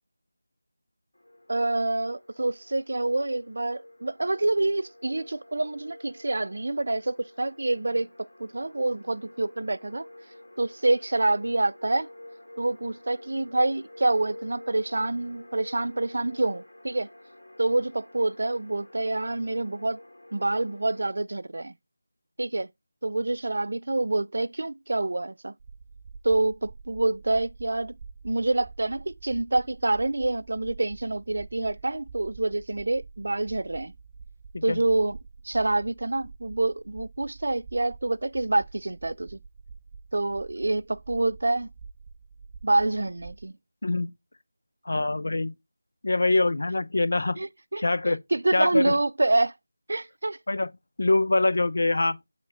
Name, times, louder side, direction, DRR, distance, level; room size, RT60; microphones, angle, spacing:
sound 1, 1.1-21.1, left 1 dB, 90° left, 2.3 m, -49 dB
voice 1, 1.5-10.1 10.6-12.1 12.6-17.1 17.6-20.0 20.3-21.7 22.4-22.7 23.0-25.5 26.2-27.9 28.2-33.9 34.6-35.2 35.4-39.4 40.1-41.7 42.6-43.5 47.4-47.8 48.3-49.5 49.9-50.4, right 2 dB, 65° right, 0.4 m, -27 dB
sound 2, 25.6-43.5, right 5 dB, 25° right, 0.6 m, -47 dB
voice 2, 43.8-44.1 44.9-45.5 46.0-47.4 47.8-48.2 48.5-49.0 50.5-50.7 51.0-52.2, left 2 dB, 65° left, 0.6 m, -24 dB
7.2 x 3.7 x 3.6 m
figure-of-eight pair, 170°, 0 cm